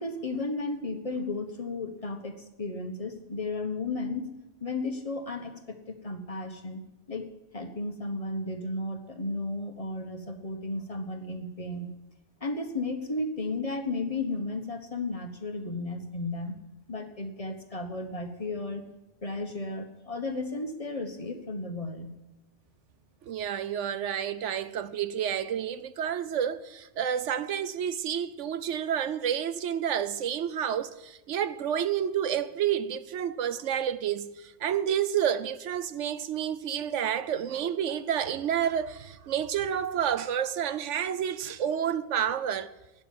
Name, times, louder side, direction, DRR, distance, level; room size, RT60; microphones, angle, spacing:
voice 1, 0.0-4.3 4.6-6.8 7.1-7.3 7.5-11.9 12.4-16.6 16.9-18.8 19.2-22.2, left 2 dB, 30° left, 1.3 m, -34 dB
voice 2, 23.3-34.3 34.6-42.7, right 9 dB, 80° right, 1.1 m, -29 dB
12.0 x 9.5 x 8.6 m
omnidirectional pair, 1.2 m